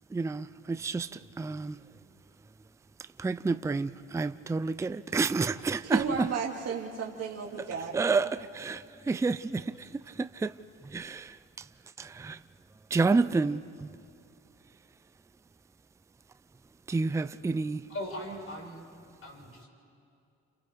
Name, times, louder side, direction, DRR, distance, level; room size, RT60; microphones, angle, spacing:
voice 1, 0.1-1.1 1.4-1.8 3.2-6.0 7.9-9.9 10.2-10.5 10.9-11.4 12.0-12.4 12.9-13.9 16.9-17.8, right 4 dB, 10° right, 0.4 m, -29 dB
voice 2, 5.8-8.0, right 6 dB, 55° right, 2.4 m, -33 dB
voice 3, 17.9-18.8 19.2-19.7, equal, 45° left, 5.7 m, -39 dB
29.5 x 28.0 x 3.4 m
cardioid pair, 90°, 30 cm